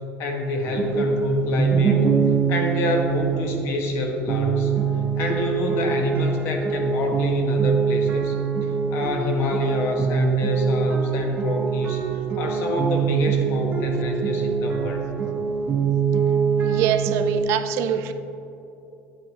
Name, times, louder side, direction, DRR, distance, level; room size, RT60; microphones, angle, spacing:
voice 1, 0.2-2.0 2.5-4.7 5.2-15.0, left 2 dB, 55° left, 3 dB, 1.2 m, -26 dB
sound 1, 0.7-17.4, right 7 dB, 30° right, 1.0 m, -24 dB
voice 2, 16.6-18.1, right 9 dB, 60° right, 9 dB, 0.5 m, -24 dB
9.4 x 9.0 x 2.9 m, 2.9 s
cardioid pair, 160°, 5 cm